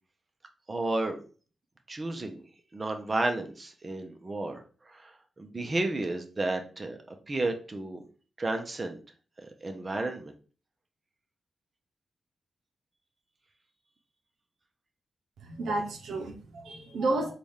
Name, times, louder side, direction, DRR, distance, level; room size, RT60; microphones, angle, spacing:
voice 1, 0.7-1.2 1.9-2.4 2.7-8.0 8.4-9.0 9.4-10.3, right 2 dB, 35° right, 4 dB, 0.7 m, -32 dB
voice 2, 15.4-17.3, right 2 dB, 85° right, 2 dB, 0.7 m, -31 dB
4.0 x 2.4 x 3.2 m, 0.39 s
supercardioid pair, 50°, 0 cm